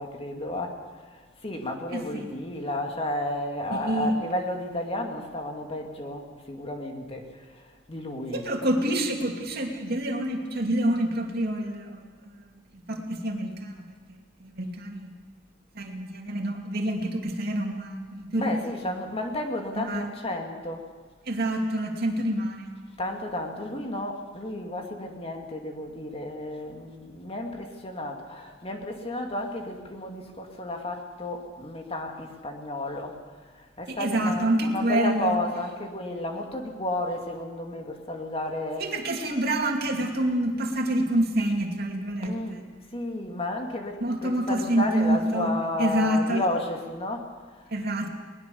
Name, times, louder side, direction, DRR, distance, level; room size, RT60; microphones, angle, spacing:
voice 1, 0.0-8.5 18.3-20.9 23.0-38.9 42.2-42.7 42.9-47.7, left 1 dB, 30° left, 3 dB, 2.3 m, -32 dB
voice 2, 1.9-2.3 3.7-4.1 8.3-12.3 12.9-13.8 14.4-15.1 15.7-18.6 19.8-20.1 21.3-22.7 33.9-35.4 38.8-42.6 44.0-45.5 45.8-46.4 47.7-48.1, right 1 dB, 55° right, 2 dB, 2.7 m, -27 dB
21.0 x 20.5 x 7.0 m, 1.5 s
head